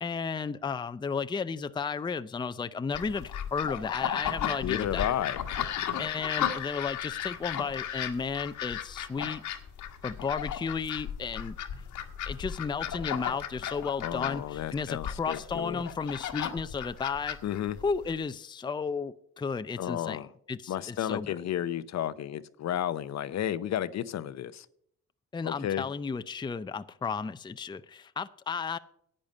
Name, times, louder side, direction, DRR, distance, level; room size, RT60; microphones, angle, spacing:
voice 1, 0.0-5.2 6.0-9.4 10.0-11.6 12.3-17.4 17.8-20.2 20.5-21.4 25.3-28.8, left 5 dB, 15° left, 0.5 m, -33 dB
sound 1, 2.9-18.1, left 9 dB, 80° left, 1.5 m, -35 dB
voice 2, 4.6-5.4 14.0-15.8 17.4-17.8 19.8-20.3 20.7-24.7 25.4-25.8, left 11 dB, 60° left, 0.7 m, -32 dB
10.5 x 8.7 x 5.3 m
cardioid pair, 90°, 30 cm